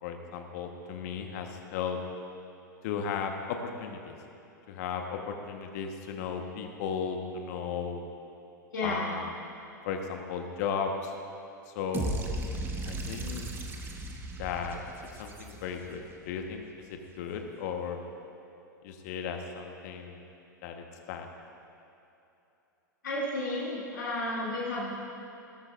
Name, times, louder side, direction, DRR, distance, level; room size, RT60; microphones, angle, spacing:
voice 1, 0.0-2.0 2.8-4.1 4.7-8.1 8.8-9.3 9.8-11.1 11.7-12.2 12.8-13.5 14.3-14.8 15.2-16.0 16.2-16.6 16.9-18.0 18.8-20.2 20.6-21.3, left 6 dB, 55° left, 4 dB, 1.3 m, -35 dB
voice 2, 8.7-9.1 23.0-24.9, left 2 dB, 75° left, -7 dB, 2.6 m, -32 dB
sound 1, 11.9-16.0, right 2 dB, 20° right, 1.3 m, -36 dB
18.5 x 13.0 x 2.6 m, 2.9 s
figure-of-eight pair, 95°, 10 cm